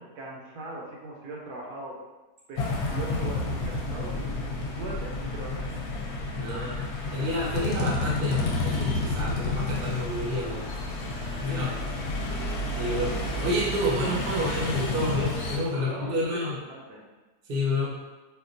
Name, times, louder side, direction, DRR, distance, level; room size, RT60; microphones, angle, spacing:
voice 1, 0.0-2.0 2.5-4.3 4.8-7.3 7.6-7.8 11.5-11.8 12.0-12.4 15.7-17.0, right 2 dB, 75° right, -2 dB, 1.2 m, -40 dB
sound 1, 2.6-15.6, left 2 dB, 75° left, 1.1 m, -30 dB
voice 2, 6.3-6.8 7.1-11.7 12.7-16.5 17.5-18.0, left 1 dB, 45° right, -5 dB, 0.8 m, -29 dB
4.2 x 2.3 x 2.5 m, 1.2 s
omnidirectional pair, 1.7 m